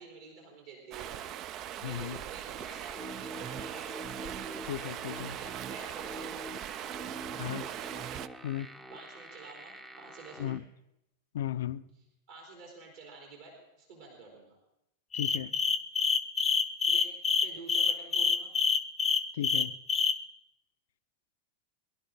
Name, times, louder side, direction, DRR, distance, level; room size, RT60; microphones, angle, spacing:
voice 1, 0.0-4.5 5.3-6.6 7.5-7.8 8.9-10.6 12.3-14.6 16.8-17.1 17.4-18.5, right 4 dB, 60° right, 4.0 m, -50 dB
Stream, 0.9-8.3, right 11 dB, 35° right, 0.4 m, -40 dB
voice 2, 1.8-2.2 4.7-5.4 7.4-7.6 8.4-8.7 10.4-10.6 11.3-11.8 15.1-15.5 19.4-19.8, left 11 dB, 60° left, 0.5 m, -35 dB
sound 1, 2.6-10.6, right 2 dB, 10° right, 0.8 m, -45 dB
sound 2, 15.1-20.1, left 5 dB, 20° left, 0.7 m, -26 dB
22.0 x 11.5 x 3.9 m
figure-of-eight pair, 90°, 0 cm